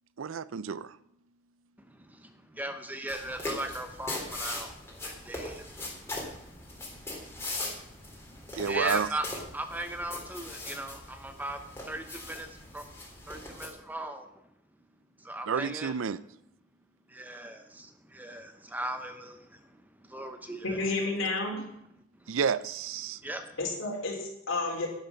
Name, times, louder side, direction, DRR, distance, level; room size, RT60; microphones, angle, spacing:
voice 1, 0.2-1.0 8.5-9.1 15.5-16.2 22.3-23.2, right 6 dB, 90° right, 0.5 m, -30 dB
voice 2, 1.8-9.2 9.5-12.9 13.3-14.3 15.2-15.9 17.1-20.8 22.2-22.3 23.2-23.6, right 1 dB, 10° right, 0.8 m, -39 dB
sound 1, 3.1-13.7, left 2 dB, 15° left, 3.2 m, -40 dB
voice 3, 20.6-21.6 23.6-24.9, left 3 dB, 80° left, 3.5 m, -31 dB
11.0 x 10.5 x 5.6 m
head